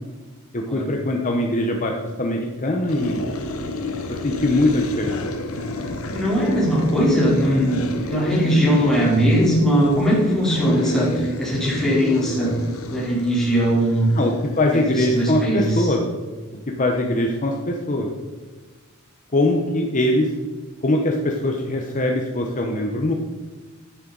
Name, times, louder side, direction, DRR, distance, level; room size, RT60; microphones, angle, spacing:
voice 1, 0.5-1.9 2.2-3.3 4.1-5.2 7.9-8.1 14.1-16.0 16.8-18.1 19.3-20.3 20.8-23.1, left 1 dB, 35° left, 1 dB, 0.9 m, -22 dB
sound 1, 2.9-15.8, left 2 dB, 70° left, 1.1 m, -32 dB
voice 2, 6.1-12.6 12.9-14.1 14.7-15.9, equal, ahead, -6 dB, 3.6 m, -20 dB
11.5 x 8.9 x 4.0 m, 1.3 s
head